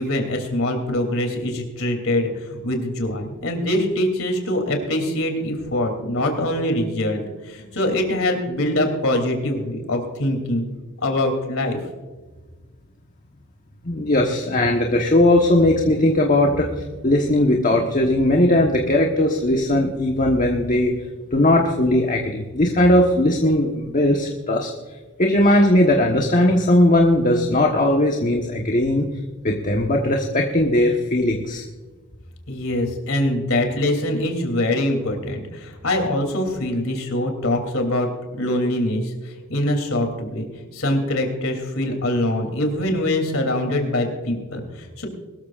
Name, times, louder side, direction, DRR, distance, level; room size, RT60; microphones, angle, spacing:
voice 1, 0.0-10.6 11.0-11.8 32.5-45.1, left 1 dB, 70° left, 4 dB, 3.1 m, -23 dB
voice 2, 13.8-21.0 21.3-24.7 25.2-29.1 29.4-31.6, left 1 dB, 40° left, 1 dB, 1.3 m, -18 dB
22.5 x 13.5 x 2.5 m, 1.3 s
head